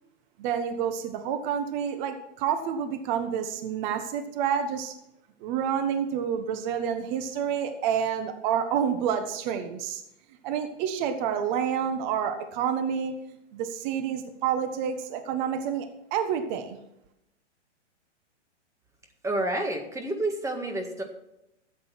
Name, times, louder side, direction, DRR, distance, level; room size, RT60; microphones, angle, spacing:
voice 1, 0.4-4.9 5.4-10.0 10.4-13.1 13.5-15.9 16.1-16.8, right 8 dB, 40° right, 7 dB, 1.3 m, -28 dB
voice 2, 19.2-21.0, right 1 dB, 10° right, 3 dB, 1.7 m, -29 dB
13.5 x 8.1 x 5.9 m, 0.85 s
hypercardioid pair, 120°, 36 cm